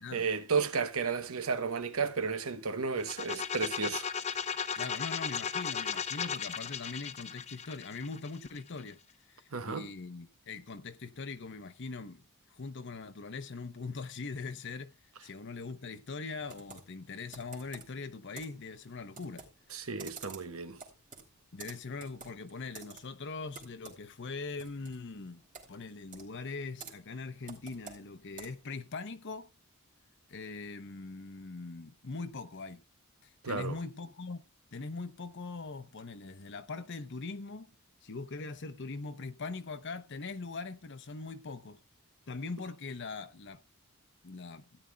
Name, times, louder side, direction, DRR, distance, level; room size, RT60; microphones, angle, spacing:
voice 1, 0.1-4.1 9.5-9.9 19.7-20.8 33.4-33.8, right 5 dB, 75° right, 1.1 m, -33 dB
sound 1, 3.0-8.8, left 7 dB, 30° left, 0.7 m, -36 dB
voice 2, 4.7-9.0 9.3-12.2 12.5-19.4 21.5-25.4 25.7-29.5 30.3-32.8 33.2-34.4 34.7-37.7 38.0-41.8 42.3-43.6 44.2-44.6, left 4 dB, 55° left, 0.8 m, -41 dB
Computer keyboard, 16.5-28.7, right 5 dB, 40° right, 2.8 m, -52 dB
16.5 x 9.9 x 2.3 m
head